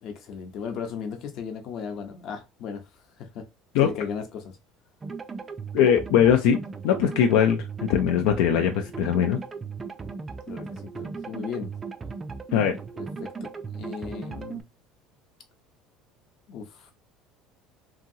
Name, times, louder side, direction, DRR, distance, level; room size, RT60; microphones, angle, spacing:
voice 1, 0.0-2.9 3.2-3.5 3.8-4.6 10.5-11.7 13.0-14.6 16.5-16.9, left 6 dB, 55° left, 0.8 m, -36 dB
sound 1, 5.0-14.6, right 5 dB, 20° right, 0.3 m, -37 dB
voice 2, 5.7-9.4 12.5-12.8, left 8 dB, 80° left, 0.4 m, -21 dB
2.8 x 2.7 x 2.7 m
cardioid pair, 140°, 0 cm